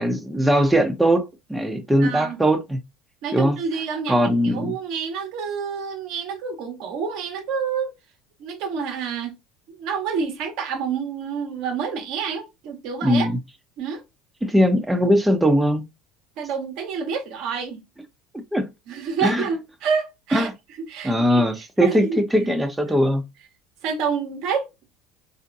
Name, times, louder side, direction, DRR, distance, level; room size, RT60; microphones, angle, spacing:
voice 1, 0.0-2.8 3.3-3.6 4.1-4.8 13.0-13.4 14.4-15.8 18.5-18.7 19.2-19.5 20.3-20.5 21.0-23.2, equal, 10° right, 1.0 m, -20 dB
voice 2, 2.0-2.4 3.2-7.9 8.4-9.3 9.7-13.3 13.8-14.0 16.4-17.8 18.9-20.5 20.9-21.4 21.8-22.2 23.8-24.8, right 6 dB, 60° right, 1.3 m, -28 dB
4.2 x 2.8 x 2.6 m
hypercardioid pair, 75°, 0 cm